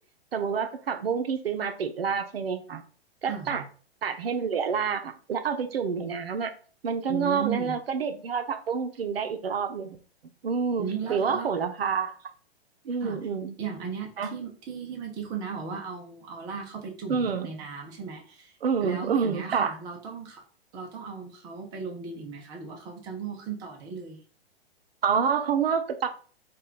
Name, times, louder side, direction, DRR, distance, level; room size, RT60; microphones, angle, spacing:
voice 1, 0.3-2.8 3.2-3.6 4.0-6.5 6.8-10.0 10.4-12.2 12.9-13.5 14.2-14.3 17.1-17.5 18.6-19.7 25.0-26.1, right 6 dB, 70° right, 0.6 m, -28 dB
voice 2, 3.3-3.6 7.1-7.7 10.8-11.6 13.0-13.3 13.6-18.5 18.8-20.4 20.7-24.2, right 6 dB, 10° right, 0.4 m, -36 dB
3.1 x 2.3 x 3.7 m
figure-of-eight pair, 115°, 32 cm